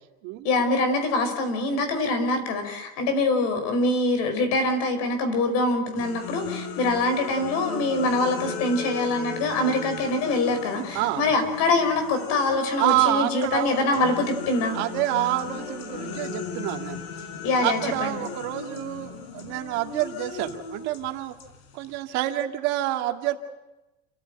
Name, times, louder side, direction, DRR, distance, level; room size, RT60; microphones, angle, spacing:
voice 1, 0.4-14.8 17.2-18.1, left 2 dB, 55° left, 7 dB, 5.3 m, -24 dB
sound 1, 6.0-13.0 13.4-22.0, left 5 dB, 75° left, 4.3 m, -37 dB
voice 2, 10.9-11.3 12.8-14.0 14.7-17.0 17.6-21.4 21.7-23.4, right 14 dB, 55° right, 5 dB, 2.2 m, -27 dB
29.5 x 14.5 x 9.0 m, 1.0 s
cardioid pair, 165°, 32 cm